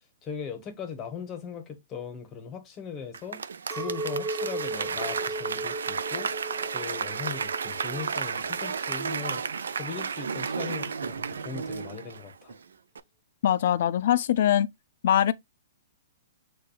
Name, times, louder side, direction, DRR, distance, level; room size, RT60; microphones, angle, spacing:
voice 1, 0.2-3.4 3.7-6.3 6.7-9.4 9.7-12.6, left 6 dB, 25° left, 0.9 m, -39 dB
Applause / Crowd, 3.1-12.6 12.9-13.0, right 6 dB, 85° right, 0.3 m, -33 dB
Chink clink, 3.7-9.2, right 2 dB, 5° right, 0.7 m, -36 dB
voice 2, 13.4-14.7 15.0-15.3, left 10 dB, 60° left, 0.3 m, -22 dB
6.5 x 2.2 x 2.3 m
hypercardioid pair, 145°, 0 cm